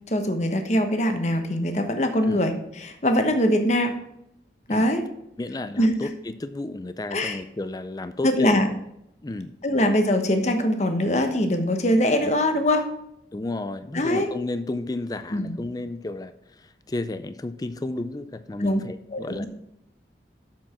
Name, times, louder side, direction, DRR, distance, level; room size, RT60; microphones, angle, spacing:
voice 1, 0.1-4.0 4.7-5.0 5.8-6.0 7.1-7.4 8.2-8.7 9.6-12.9 13.9-14.3 15.3-15.6 18.6-18.8 19.1-19.5, left 1 dB, 40° left, 6 dB, 1.1 m, -22 dB
voice 2, 5.4-8.5 9.2-9.5 12.2-12.3 13.3-19.4, left 2 dB, 20° left, 11 dB, 0.4 m, -32 dB
7.3 x 7.2 x 5.9 m, 0.81 s
head